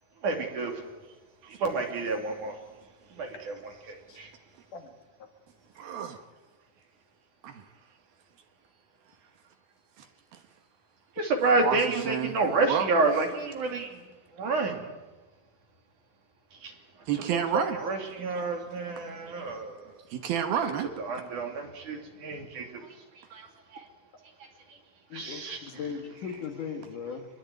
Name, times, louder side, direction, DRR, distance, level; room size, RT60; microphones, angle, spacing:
voice 1, 0.2-0.7 1.6-2.5 3.2-4.3 11.2-13.9 14.4-14.8 16.6-16.7 17.3-17.4 17.8-19.7 21.0-22.7 23.3-23.4 25.1-25.6, right 3 dB, 50° right, 4 dB, 4.0 m, -29 dB
voice 2, 5.8-6.2 7.4-7.6 10.0-10.1 10.3-10.4 11.6-13.2 17.1-17.8 19.5-19.6 20.1-20.9, right 8 dB, 70° right, 7 dB, 2.9 m, -31 dB
voice 3, 25.1-27.3, left 6 dB, 55° left, 5 dB, 2.9 m, -38 dB
25.5 x 21.5 x 9.3 m, 1.2 s
omnidirectional pair, 4.8 m